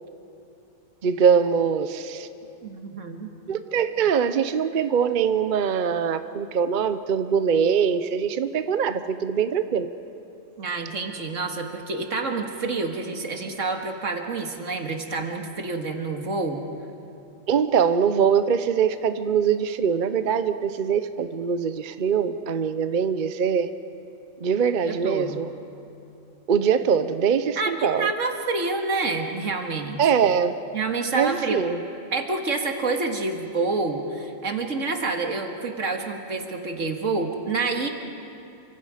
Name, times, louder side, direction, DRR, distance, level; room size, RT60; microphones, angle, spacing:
voice 1, 1.0-2.3 3.5-9.9 17.5-23.7 24.4-25.5 26.5-28.1 30.0-30.6 31.1-31.8, right 7 dB, 45° right, 11 dB, 0.8 m, -23 dB
voice 2, 2.6-3.3 10.6-16.6 24.8-25.4 27.6-30.1 30.7-31.6 32.1-37.9, right 3 dB, 80° right, 4 dB, 2.1 m, -28 dB
28.5 x 25.0 x 5.0 m, 2.7 s
omnidirectional pair, 1.3 m